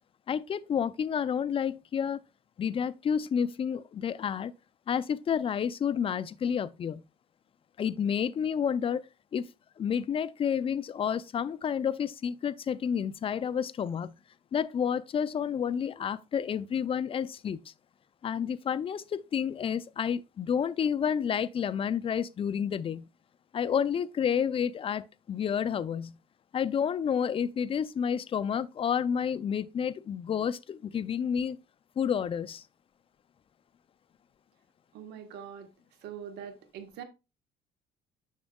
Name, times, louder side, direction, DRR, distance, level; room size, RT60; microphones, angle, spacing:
voice 1, 0.3-2.2 2.6-4.5 4.9-7.0 7.8-9.0 9.3-9.5 9.8-14.1 14.5-17.6 18.2-23.1 23.5-26.2 26.5-31.6 32.0-32.6, left 7 dB, 35° left, 0.4 m, -30 dB
voice 2, 34.9-35.7 36.0-37.0, right 8 dB, 80° right, 1.2 m, -43 dB
7.3 x 6.1 x 2.3 m
cardioid pair, 110°, 17 cm